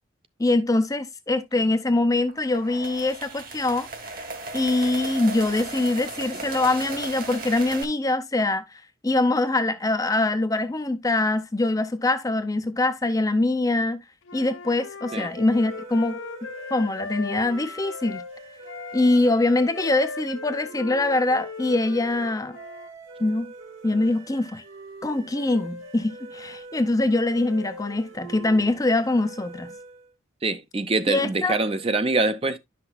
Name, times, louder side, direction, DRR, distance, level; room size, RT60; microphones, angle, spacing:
voice 1, 0.4-3.9 4.5-8.6 9.0-14.0 14.3-16.2 16.7-18.2 18.9-22.6 23.2-23.5 23.8-24.6 25.0-29.7 31.1-31.6, left 2 dB, 15° left, 0.5 m, -23 dB
sound 1, 2.3-7.8, right 3 dB, 45° right, 1.4 m, -36 dB
Wind instrument woodwind instrument, 14.2-18.3 18.6-22.9, left 4 dB, 70° left, 0.7 m, -38 dB
sound 2, 15.0-30.1, right 2 dB, 75° right, 2.1 m, -43 dB
voice 2, 30.4-32.6, right 3 dB, 30° right, 0.6 m, -24 dB
10.5 x 5.9 x 2.2 m
head